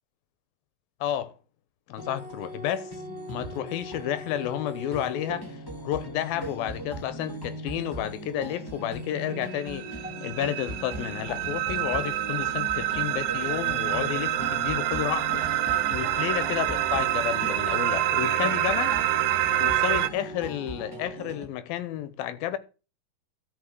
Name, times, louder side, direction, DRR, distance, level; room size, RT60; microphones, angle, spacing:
voice 1, 1.0-1.3 1.9-3.0 3.3-15.5 15.9-19.0 19.6-22.6, left 11 dB, 85° left, 2.9 m, -31 dB
sound 1, 2.0-21.5, right 1 dB, 10° left, 1.6 m, -39 dB
sound 2, 9.5-20.1, right 13 dB, 80° right, 2.5 m, -27 dB
sound 3, 11.2-17.6, right 1 dB, 10° right, 1.5 m, -50 dB
13.0 x 5.8 x 7.7 m
omnidirectional pair, 4.1 m